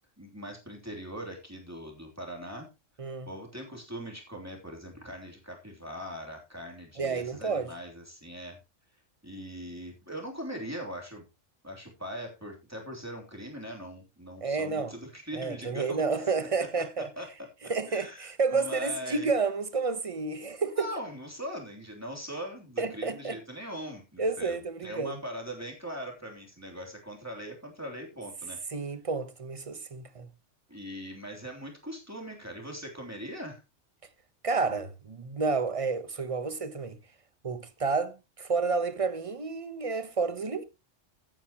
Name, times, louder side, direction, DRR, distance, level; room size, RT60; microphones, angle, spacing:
voice 1, 0.2-2.7 3.3-8.6 9.2-11.2 11.6-16.0 16.4-16.5 16.8-17.3 17.6-19.3 20.6-28.6 30.7-33.6, equal, 10° right, 3.1 m, -41 dB
voice 2, 7.0-7.7 14.4-14.9 15.3-17.1 17.7-20.9 22.8-23.4 24.2-25.1 28.7-30.3 34.4-37.0 37.4-40.6, right 4 dB, 30° right, 0.9 m, -30 dB
15.5 x 9.0 x 2.9 m
omnidirectional pair, 1.2 m